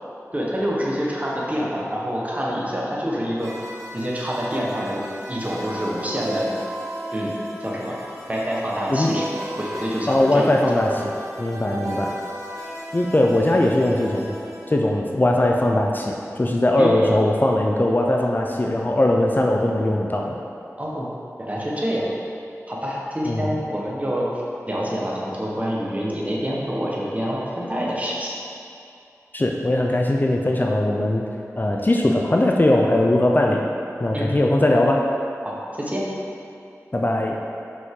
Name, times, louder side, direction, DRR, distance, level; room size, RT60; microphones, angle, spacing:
voice 1, 0.3-3.5 3.9-5.0 5.3-6.5 7.1-7.3 7.6-7.9 8.3-9.3 9.6-10.8 11.7-12.0 16.8-17.1 20.8-21.1 21.4-22.1 22.7-24.3 24.7-28.3 34.1-34.3 35.4-36.1, equal, 25° right, -4 dB, 1.3 m, -26 dB
sound 1, 3.4-14.7, equal, 75° right, 1.2 m, -35 dB
voice 2, 10.1-11.1 11.4-12.1 12.9-14.3 14.7-20.4 23.2-23.5 29.3-31.2 31.6-33.6 34.0-35.1 36.9-37.4, left 1 dB, 35° left, 0 dB, 0.5 m, -20 dB
6.3 x 5.2 x 3.8 m, 2.5 s
wide cardioid pair, 60°, 6 cm